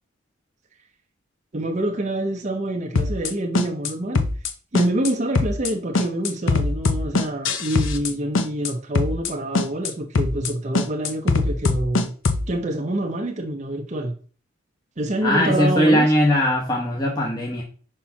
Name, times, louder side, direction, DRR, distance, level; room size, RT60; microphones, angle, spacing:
voice 1, 1.5-4.2 4.7-12.1 12.5-14.1 15.0-16.1, right 1 dB, 35° right, 0.7 m, -26 dB
sound 1, 3.0-3.3 3.6-3.9 4.2-4.5 4.8-5.1 5.4-5.7 6.0-8.1 8.4-8.7 9.0-9.3 9.6-9.9 10.2-10.5 10.8-12.5, left 3 dB, 75° left, 0.8 m, -21 dB
voice 2, 15.2-17.6, equal, 20° left, 1.1 m, -20 dB
5.4 x 4.3 x 5.7 m
head